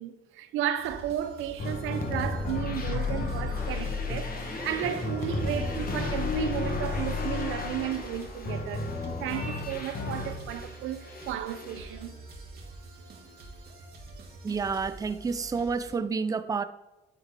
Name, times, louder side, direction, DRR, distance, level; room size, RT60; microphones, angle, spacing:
voice 1, 0.0-12.1, right 10 dB, 90° right, 0.6 m, -34 dB
sound 1, 0.8-16.0, right 2 dB, 50° right, 1.8 m, -46 dB
sound 2, 1.6-10.7 11.1-11.9, left 3 dB, 45° left, 1.2 m, -32 dB
Musical instrument, 2.6-7.4, right 1 dB, 10° left, 1.7 m, -43 dB
voice 2, 14.4-16.6, right 5 dB, 20° right, 0.4 m, -29 dB
9.4 x 3.6 x 4.8 m
cardioid pair, 90°, 20 cm